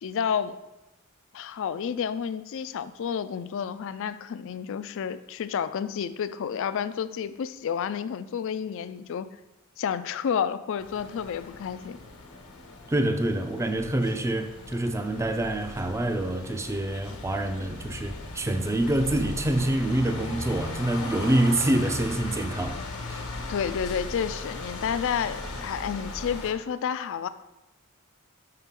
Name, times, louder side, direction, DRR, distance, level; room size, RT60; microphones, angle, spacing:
voice 1, 0.0-0.6 1.3-9.3 9.8-12.0 23.5-27.3, left 7 dB, 60° left, 0.3 m, -30 dB
sound 1, 10.8-26.5, left 2 dB, 85° left, 1.2 m, -38 dB
voice 2, 12.9-22.8 23.1-23.2, right 1 dB, 15° right, 0.4 m, -26 dB
5.9 x 5.7 x 3.6 m
head